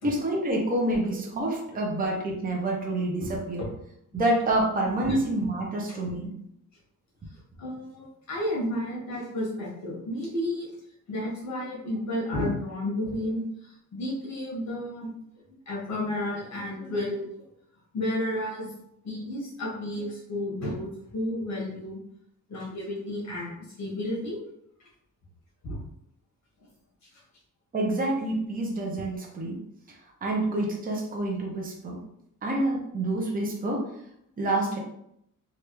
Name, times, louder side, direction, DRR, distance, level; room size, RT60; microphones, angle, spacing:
voice 1, 0.0-3.7 4.1-6.3 27.7-29.6 29.9-32.0 32.4-33.9 34.4-34.8, right 1 dB, 25° right, -1 dB, 0.7 m, -28 dB
voice 2, 7.6-10.7 11.1-15.1 15.7-17.3 17.9-18.7 19.0-20.9 21.1-22.0 22.5-24.4 25.6-25.8, left 1 dB, 55° left, -5 dB, 1.4 m, -32 dB
3.3 x 2.5 x 3.0 m, 0.74 s
wide cardioid pair, 135°, 32 cm